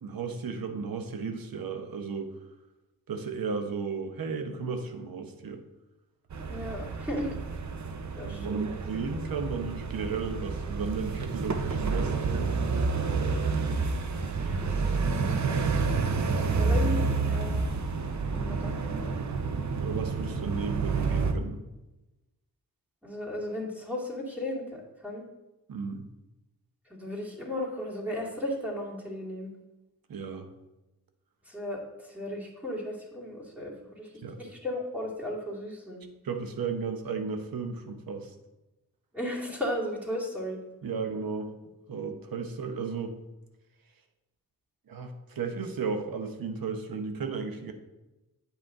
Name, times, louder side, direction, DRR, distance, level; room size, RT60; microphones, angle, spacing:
voice 1, 0.0-2.3 3.1-5.6 8.2-12.3 19.8-21.6 25.7-26.1 30.1-30.5 34.2-34.4 36.2-38.3 40.8-41.5 41.9-43.2 44.9-47.7, right 5 dB, 75° right, 6 dB, 1.0 m, -34 dB
sound 1, 6.3-21.3, right 4 dB, 55° right, 0.8 m, -29 dB
voice 2, 6.4-7.4 8.1-8.7 14.3-15.4 16.3-17.6 18.2-18.8 23.0-25.2 26.9-29.5 31.5-34.1 34.4-36.0 39.1-40.6, left 1 dB, 5° right, -4 dB, 2.2 m, -35 dB
8.7 x 5.4 x 3.7 m, 1.0 s
cardioid pair, 70°, 35 cm